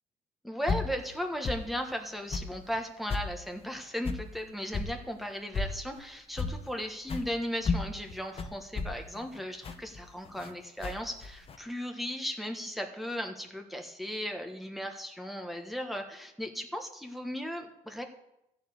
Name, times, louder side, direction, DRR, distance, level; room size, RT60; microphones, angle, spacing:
voice 1, 0.4-18.0, equal, ahead, 3 dB, 1.3 m, -36 dB
sound 1, 0.7-1.0 1.4-1.7 2.3-2.6 3.1-3.3 4.1-4.3 4.7-4.9 5.5-5.8 6.4-6.7 7.1-7.3 7.6-10.5 10.8-11.6, left 4 dB, 35° left, 0.9 m, -33 dB
14.0 x 4.9 x 8.0 m, 0.89 s
cardioid pair, 110°, 17 cm